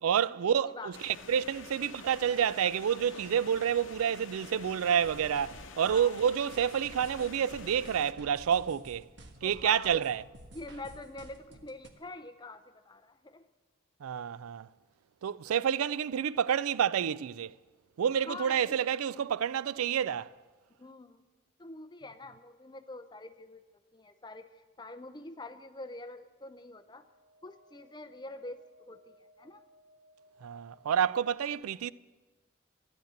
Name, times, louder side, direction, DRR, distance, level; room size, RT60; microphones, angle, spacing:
voice 1, 0.0-9.1 9.4-10.2 14.0-14.7 15.2-17.5 18.0-20.3 30.4-31.9, right 8 dB, 90° right, 0.4 m, -29 dB
sound 1, 0.9-8.1, left 5 dB, 60° left, 0.9 m, -48 dB
sound 2, 5.0-11.9, right 1 dB, 55° right, 1.4 m, -52 dB
voice 2, 5.8-6.1 9.4-10.0 10.5-13.4 18.3-18.8 20.8-21.2 21.6-23.6 23.9-24.5 24.8-27.1 27.4-29.6, left 2 dB, 20° left, 0.6 m, -45 dB
sound 3, 26.4-31.2, equal, 10° right, 6.4 m, -63 dB
13.0 x 10.5 x 7.9 m
head